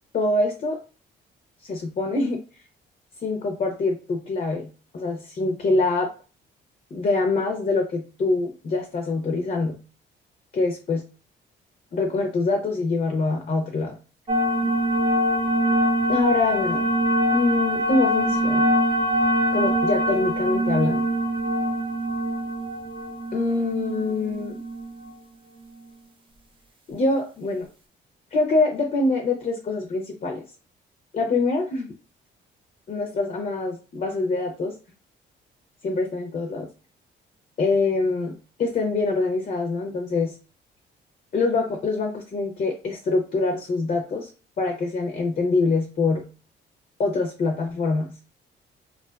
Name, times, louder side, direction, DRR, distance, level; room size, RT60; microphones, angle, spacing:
voice 1, 0.1-0.8 1.6-2.4 3.2-4.7 4.9-6.1 6.9-9.8 10.6-11.0 11.9-13.9 16.1-16.9 17.3-18.7 19.5-21.1 23.3-24.6 26.9-27.7 28.3-30.4 31.1-31.9 32.9-34.7 35.8-36.7 37.6-40.3 41.3-44.3 44.6-46.2 47.0-48.1, left 3 dB, 40° left, 2 dB, 0.6 m, -24 dB
sound 1, 14.3-25.1, equal, 25° right, 0.4 m, -23 dB
2.4 x 2.3 x 2.2 m, 0.35 s
cardioid pair, 90°, 20 cm